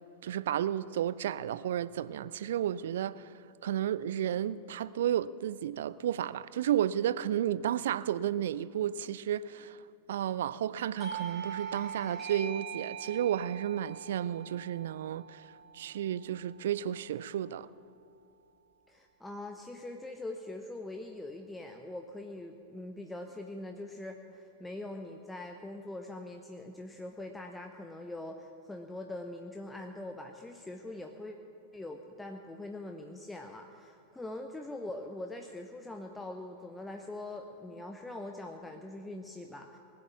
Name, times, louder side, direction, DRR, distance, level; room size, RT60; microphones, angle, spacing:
voice 1, 0.2-3.3 3.6-9.8 10.1-15.5 15.7-17.7, right 10 dB, 60° right, 0.4 m, -32 dB
Doorbell, 11.0-16.3, right 6 dB, 25° right, 3.3 m, -42 dB
voice 2, 18.9-31.4 31.7-39.8, left 2 dB, 10° left, 0.8 m, -43 dB
20.0 x 7.8 x 7.2 m
figure-of-eight pair, 90°, 0 cm